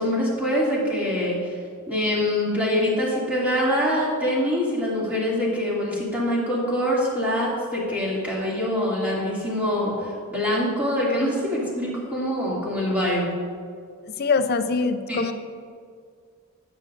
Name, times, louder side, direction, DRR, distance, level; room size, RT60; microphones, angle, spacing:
voice 1, 0.0-1.5 1.9-13.4 15.1-15.2, left 1 dB, 5° right, -7 dB, 2.5 m, -24 dB
voice 2, 14.2-15.3, left 4 dB, 45° left, 9 dB, 0.5 m, -23 dB
16.0 x 7.7 x 2.6 m, 2.2 s
head